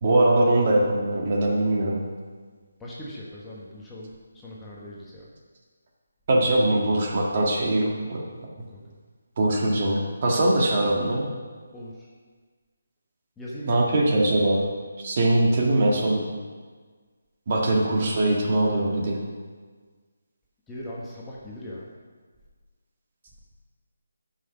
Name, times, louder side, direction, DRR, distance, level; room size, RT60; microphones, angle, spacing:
voice 1, 0.0-2.0 6.3-8.2 9.4-11.3 13.7-14.7 15.0-16.2 17.5-19.2, right 1 dB, 40° right, -2 dB, 1.7 m, -22 dB
voice 2, 2.8-5.3 8.7-8.8 11.7-12.0 13.4-14.0 20.7-21.9, equal, 10° left, -7 dB, 1.2 m, -39 dB
9.6 x 5.9 x 5.2 m, 1.5 s
figure-of-eight pair, 160°, 0 cm